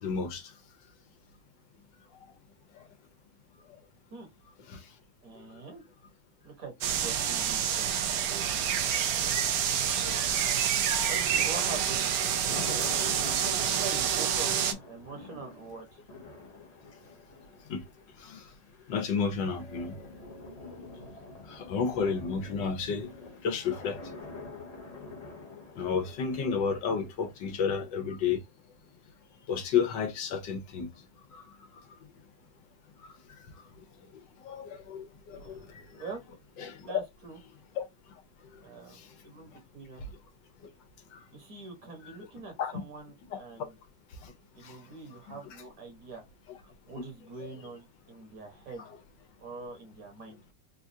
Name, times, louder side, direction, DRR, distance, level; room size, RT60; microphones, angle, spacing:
voice 1, 0.0-0.4 4.7-4.8 9.9-10.2 10.9-11.1 17.7-17.8 18.2-18.4 18.9-19.9 21.5-23.1 23.4-24.0 25.8-28.4 29.5-30.9 31.3-31.5 34.4-35.8 36.6-37.0 37.8-37.9 42.6-42.7 43.3-43.4 44.2-44.3 44.6-44.7 47.4-47.5, left 6 dB, 80° left, 1.4 m, -31 dB
voice 2, 5.2-5.8 6.4-8.6 10.1-10.4 11.0-12.9 13.6-14.5 14.9-16.0 35.4-36.2 36.8-37.4 38.6-40.0 41.3-43.7 44.5-46.2 46.6-48.9 49.4-50.4, right 4 dB, 55° right, 1.4 m, -44 dB
sound 1, 6.8-14.7, right 8 dB, 70° right, 0.9 m, -28 dB
sound 2, 9.2-28.2, left 3 dB, 60° left, 0.4 m, -47 dB
4.0 x 2.3 x 2.7 m
omnidirectional pair, 1.9 m